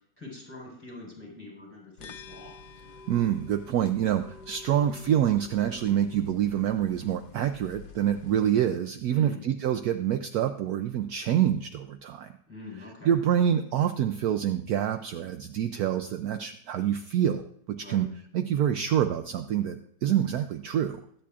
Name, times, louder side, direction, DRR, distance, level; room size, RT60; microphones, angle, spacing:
voice 1, 0.2-2.5 9.1-9.4 12.5-13.1 17.8-18.1, left 3 dB, 5° left, -2 dB, 4.3 m, -44 dB
sound 1, 2.0-8.5, left 4 dB, 70° left, 1.2 m, -49 dB
voice 2, 3.1-12.3 13.0-18.1 18.3-21.0, right 10 dB, 70° right, 8 dB, 1.0 m, -26 dB
22.0 x 8.5 x 2.4 m, 0.67 s
omnidirectional pair, 1.8 m